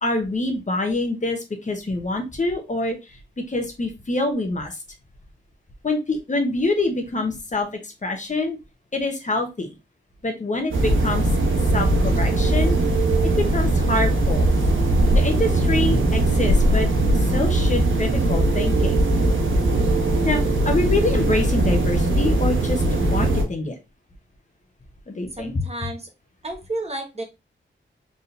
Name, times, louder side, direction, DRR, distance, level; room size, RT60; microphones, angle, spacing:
voice 1, 0.0-3.0 3.5-4.8 5.8-8.6 8.9-9.7 10.2-11.3 11.7-12.8 13.4-14.5 15.1-16.9 17.3-19.0 20.2-23.7 25.1-25.6, left 2 dB, 40° left, 4 dB, 1.0 m, -25 dB
sound 1, 10.7-23.4, right 2 dB, 80° right, 1.1 m, -20 dB
voice 2, 25.3-26.1 26.4-27.2, right 2 dB, 30° right, 3 dB, 1.2 m, -31 dB
4.2 x 3.7 x 2.6 m, 0.25 s
wide cardioid pair, 90°, 20 cm